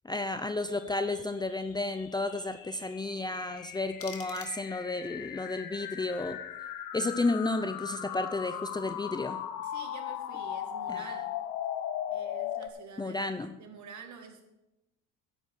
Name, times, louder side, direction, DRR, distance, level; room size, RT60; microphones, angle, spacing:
voice 1, 0.0-6.4 6.9-9.4 10.9-11.1 13.0-13.5, left 2 dB, 10° left, 10 dB, 0.6 m, -32 dB
sound 1, 0.8-12.7, left 10 dB, 65° left, 1.2 m, -38 dB
sound 2, 3.6-5.0, left 6 dB, 35° left, 2.0 m, -49 dB
voice 2, 9.6-11.3 12.1-14.4, right 5 dB, 50° right, 5 dB, 2.3 m, -48 dB
9.9 x 8.5 x 6.4 m, 0.91 s
supercardioid pair, 80°, 37 cm